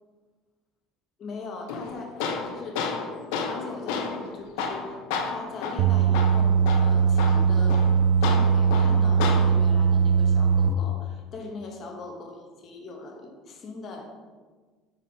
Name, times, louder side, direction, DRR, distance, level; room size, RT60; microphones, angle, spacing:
voice 1, 1.2-2.8 3.3-7.9 8.2-12.4 12.6-14.1, left 3 dB, 40° left, 1 dB, 1.2 m, -40 dB
Tools, 1.7-9.7, left 5 dB, 85° left, 0.6 m, -32 dB
sound 1, 5.8-10.7, right 6 dB, 70° right, 0.3 m, -20 dB
5.4 x 4.1 x 5.0 m, 1.4 s
cardioid pair, 120°, 0 cm